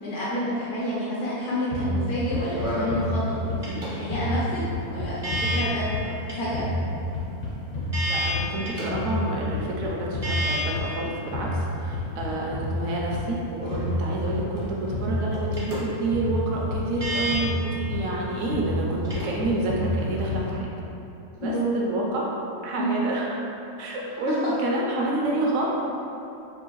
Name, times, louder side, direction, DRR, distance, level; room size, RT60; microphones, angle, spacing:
voice 1, 0.0-3.2 3.5-4.6 4.9-5.8 6.3-6.7 21.4-21.7 22.8-23.0 24.3-24.4, equal, 75° left, -8 dB, 1.1 m, -29 dB
sound 1, 1.7-3.8 4.1-6.3 6.5-8.6 8.9-11.0 11.3-13.3 13.7-15.8 16.1-18.2 18.5-20.6, left 1 dB, 55° left, 0.6 m, -30 dB
sound 2, 2.0-20.5, equal, 40° right, 0.5 m, -34 dB
voice 2, 8.1-20.7 21.4-22.3 22.6-23.4 23.8-25.7, right 2 dB, 70° right, -3 dB, 0.8 m, -29 dB
4.5 x 2.4 x 3.0 m, 2.9 s
omnidirectional pair, 1.7 m